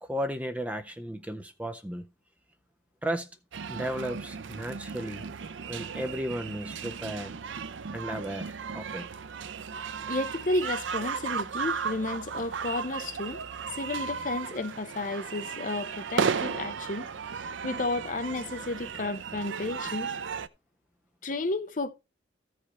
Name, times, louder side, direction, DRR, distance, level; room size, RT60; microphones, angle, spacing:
voice 1, 0.0-2.1 3.0-3.3 3.7-5.3 5.7-7.3 7.9-9.1, equal, 10° right, 0.5 m, -34 dB
sound 1, 3.5-20.5, right 6 dB, 80° right, 0.5 m, -35 dB
voice 2, 10.1-13.4 13.7-17.1 17.4-20.1 21.2-21.9, left 2 dB, 45° left, 0.7 m, -32 dB
14.0 x 5.0 x 4.2 m
head